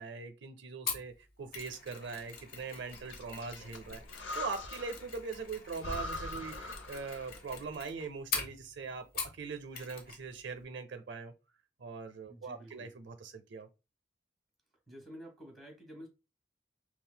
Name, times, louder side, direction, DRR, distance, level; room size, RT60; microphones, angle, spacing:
voice 1, 0.0-4.0 4.3-9.0 9.3-11.3 11.8-13.7, right 4 dB, 75° right, 0.5 m, -41 dB
Mechanisms, 0.9-9.5 9.7-10.2 10.5-10.6, left 5 dB, 55° left, 1.1 m, -43 dB
Breathing, 2.9-5.1 5.4-5.5 5.8-7.5, left 2 dB, 80° left, 0.7 m, -42 dB
voice 2, 12.3-12.9 14.9-16.1, equal, ahead, 1.3 m, -50 dB
5.5 x 2.3 x 2.2 m
head